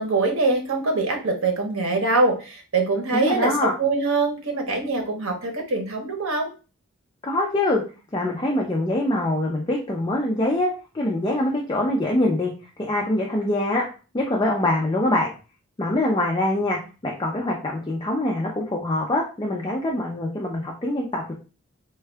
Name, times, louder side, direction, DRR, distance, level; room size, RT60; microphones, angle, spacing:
voice 1, 0.0-6.5, right 3 dB, 70° right, 4 dB, 0.9 m, -23 dB
voice 2, 3.1-3.8 7.2-7.8 8.1-12.5 12.8-13.8 14.1-15.3 15.8-21.3, left 1 dB, 20° left, -1 dB, 0.4 m, -24 dB
3.5 x 2.2 x 3.3 m, 0.34 s
head